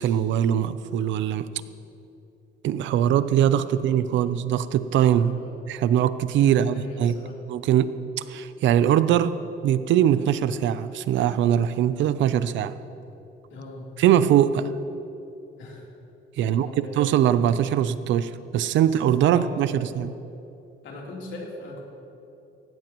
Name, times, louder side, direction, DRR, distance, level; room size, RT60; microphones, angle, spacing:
voice 1, 0.0-1.5 2.6-5.3 5.7-7.1 7.5-7.9 8.3-9.4 9.6-12.7 14.0-14.7 16.4-16.7 16.9-20.1, right 10 dB, 75° right, 14 dB, 0.6 m, -21 dB
voice 2, 3.6-4.0 5.3-5.5 6.5-7.4 13.5-13.9 15.6-15.8 16.4-17.0 18.7-19.0 19.2-19.8 20.8-21.8, left 2 dB, 70° left, -3 dB, 3.4 m, -40 dB
17.5 x 17.0 x 3.0 m, 2.9 s
cardioid pair, 140°, 20 cm